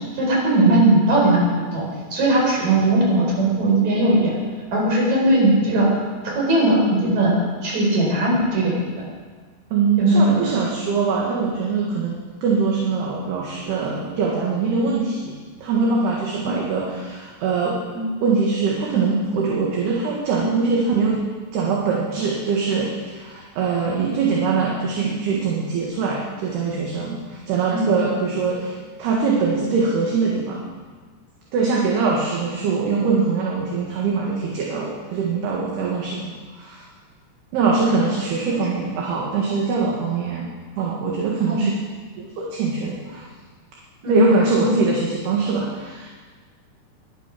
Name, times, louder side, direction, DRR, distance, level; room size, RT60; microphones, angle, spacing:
voice 1, 0.1-1.4 1.7-4.3 4.7-5.9 6.2-7.3 7.6-8.7 10.0-10.4 17.9-18.1 20.4-20.5 27.7-27.9 38.5-38.6 41.5-41.7 44.0-44.2, right 2 dB, 40° right, -4 dB, 5.6 m, -18 dB
voice 2, 9.7-12.1 12.4-15.3 15.6-17.8 18.2-21.2 21.5-30.6 31.5-36.8 37.5-40.5 40.8-41.7 42.1-43.3 44.1-46.1, right 5 dB, 65° right, -3 dB, 3.4 m, -22 dB
22.0 x 8.8 x 6.1 m, 1.5 s
omnidirectional pair, 5.5 m